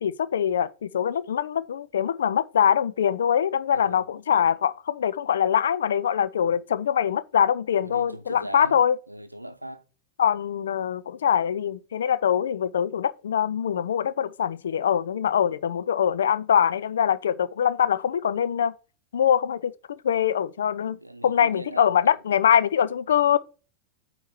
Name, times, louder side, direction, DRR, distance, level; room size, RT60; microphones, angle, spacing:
voice 1, 0.0-9.0 10.2-18.7 19.1-21.0 21.2-23.4, left 8 dB, 65° left, 0.4 m, -23 dB
voice 2, 3.7-4.0 7.7-8.8 9.1-9.8 20.9-22.2, right 1 dB, 85° right, 0.7 m, -40 dB
8.9 x 3.0 x 6.3 m
figure-of-eight pair, 90°, 0 cm